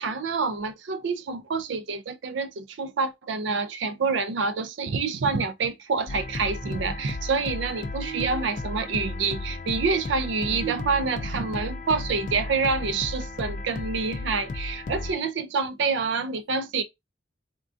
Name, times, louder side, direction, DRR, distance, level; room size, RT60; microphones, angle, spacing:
voice 1, 0.0-16.8, right 4 dB, 85° right, 0.4 m, -27 dB
sound 1, 6.1-15.1, left 2 dB, 45° left, 0.4 m, -34 dB
3.6 x 2.5 x 2.3 m
head